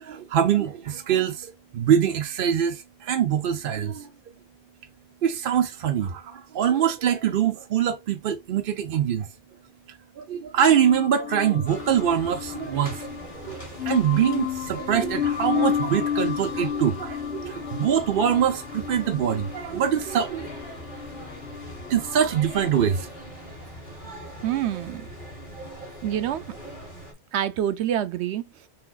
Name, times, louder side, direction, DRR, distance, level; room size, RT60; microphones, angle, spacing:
voice 1, 0.0-4.1 5.2-9.3 10.2-13.6 13.8-20.5 21.9-23.1, right 9 dB, 60° right, 0.7 m, -24 dB
sound 1, 10.7-22.9, left 9 dB, 75° left, 1.1 m, -32 dB
Mall Next to a Store, 11.7-27.1, equal, 50° left, 2.3 m, -41 dB
voice 2, 24.4-25.1 26.0-26.4 27.3-28.5, right 11 dB, 90° right, 0.9 m, -26 dB
6.0 x 3.4 x 2.4 m
omnidirectional pair, 1.1 m